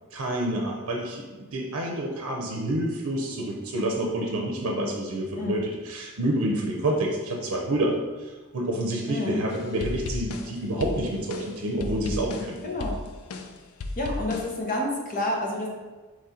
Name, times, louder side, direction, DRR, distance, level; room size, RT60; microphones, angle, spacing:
voice 1, 0.1-12.6, right 1 dB, 80° right, 0 dB, 0.6 m, -28 dB
voice 2, 9.1-9.4 12.3-13.0 14.0-15.7, left 1 dB, 40° left, -1 dB, 0.8 m, -29 dB
sound 1, 9.5-14.6, left 2 dB, 85° left, 0.4 m, -35 dB
4.2 x 3.1 x 3.8 m, 1.3 s
head